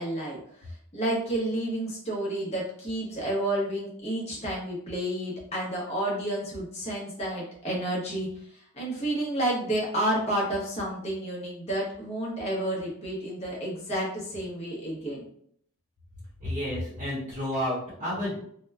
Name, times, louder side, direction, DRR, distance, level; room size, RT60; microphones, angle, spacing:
voice 1, 0.0-15.2, right 1 dB, 30° left, -4 dB, 0.8 m, -30 dB
voice 2, 16.4-18.4, left 1 dB, 35° right, -8 dB, 0.9 m, -31 dB
2.9 x 2.1 x 2.3 m, 0.65 s
head